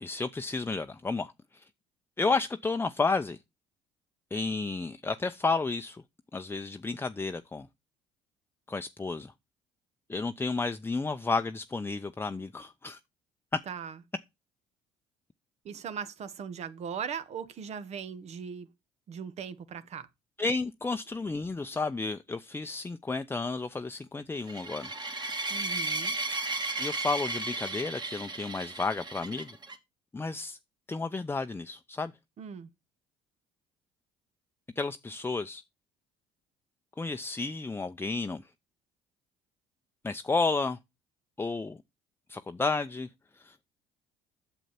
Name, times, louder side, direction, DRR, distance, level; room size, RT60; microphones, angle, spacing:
voice 1, 0.0-1.6 2.2-3.4 4.3-6.0 6.3-7.7 8.7-9.3 10.1-13.0 20.4-25.0 26.8-29.6 30.1-30.6 30.9-32.1 34.8-35.6 37.0-38.5 40.0-40.8 41.4-41.8 42.3-43.1 43.3-43.6, left 3 dB, 15° left, 0.7 m, -32 dB
voice 2, 15.6-18.7 19.1-20.1 25.5-26.2 32.4-32.7, right 7 dB, 55° right, 1.4 m, -39 dB
birds attack, 24.5-29.7, right 2 dB, 30° right, 2.6 m, -34 dB
9.1 x 7.1 x 4.3 m
hypercardioid pair, 60°, 14 cm